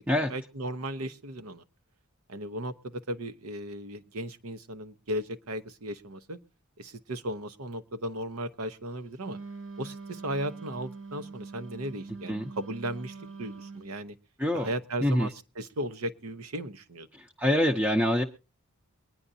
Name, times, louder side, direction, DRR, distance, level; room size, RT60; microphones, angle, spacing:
voice 1, 0.0-1.6 2.3-6.4 6.8-9.4 9.8-14.1 14.5-17.1, right 1 dB, 75° right, 11 dB, 0.8 m, -36 dB
Wind instrument woodwind instrument, 9.2-13.9, right 4 dB, 60° right, 1.5 m, -44 dB
voice 2, 17.4-18.2, left 1 dB, 10° right, 3 dB, 0.6 m, -25 dB
23.5 x 10.0 x 2.7 m, 0.32 s
head